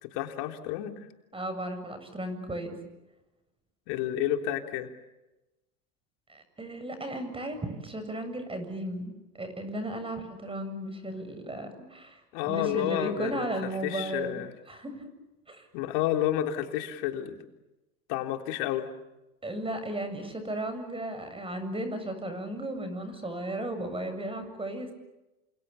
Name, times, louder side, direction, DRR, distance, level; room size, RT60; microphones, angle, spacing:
voice 1, 0.0-1.1 3.9-4.9 12.3-13.5 13.8-14.5 15.7-17.4 18.1-18.9, left 12 dB, 55° left, 5 dB, 3.7 m, -30 dB
voice 2, 1.3-2.7 6.3-14.4 14.7-15.1 15.5-15.7 19.4-24.9, right 1 dB, 10° right, 9 dB, 7.6 m, -35 dB
29.0 x 28.0 x 7.1 m, 0.99 s
hypercardioid pair, 100°, 46 cm